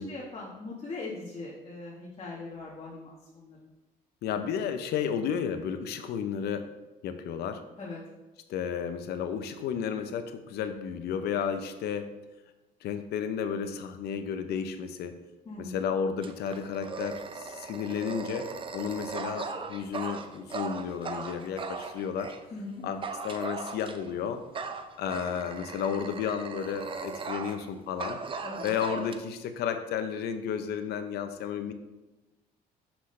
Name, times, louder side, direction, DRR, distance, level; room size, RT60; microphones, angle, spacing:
voice 1, 0.1-3.6 7.8-8.0 15.4-15.8 22.5-22.8 28.4-28.7, left 3 dB, 35° left, -5 dB, 1.3 m, -40 dB
voice 2, 4.2-6.7 7.0-7.6 8.5-12.1 12.8-15.1 15.6-22.3 22.8-24.6 25.0-28.2 28.6-31.7, left 7 dB, 75° left, 9 dB, 0.6 m, -32 dB
Dog, 16.2-22.4 23.0-24.1 24.5-27.7 28.0-29.2, right 4 dB, 30° right, 0.5 m, -38 dB
6.0 x 5.7 x 3.2 m, 1.1 s
cardioid pair, 110°, 17 cm